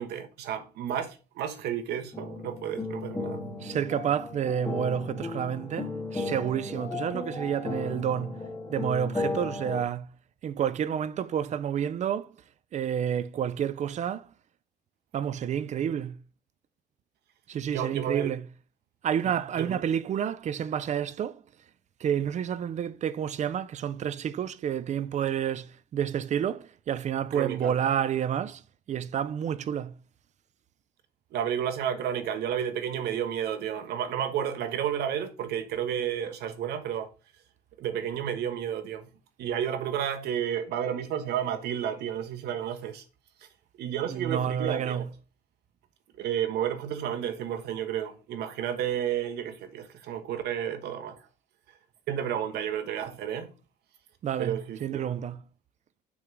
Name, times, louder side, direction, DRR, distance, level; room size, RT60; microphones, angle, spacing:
voice 1, 0.0-3.4 17.7-18.3 19.2-19.8 27.3-27.7 31.3-37.1 37.8-39.1 39.4-43.0 43.8-45.0 46.2-51.2 52.1-53.5 54.4-55.0, right 9 dB, 75° right, 1.2 m, -31 dB
sound 1, 2.1-9.8, left 3 dB, 15° left, 1.7 m, -35 dB
voice 2, 3.6-8.4 8.7-10.1 10.4-12.3 12.7-14.3 15.1-16.2 17.5-18.4 19.0-21.4 22.0-28.6 28.9-30.0 44.0-45.1 54.2-55.4, right 9 dB, 45° right, 0.5 m, -29 dB
6.2 x 3.6 x 6.0 m
cardioid pair, 110°, 17 cm